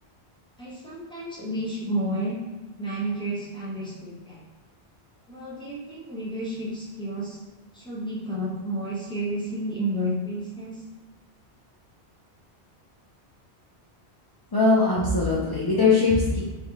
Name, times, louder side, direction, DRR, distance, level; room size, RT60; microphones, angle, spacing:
voice 1, 0.6-2.4 2.8-4.4 5.3-7.4 7.7-10.8, right 1 dB, 5° left, -6 dB, 0.8 m, -31 dB
voice 2, 14.5-16.4, left 3 dB, 40° left, -7 dB, 0.3 m, -21 dB
3.4 x 2.6 x 3.5 m, 1.2 s
omnidirectional pair, 1.1 m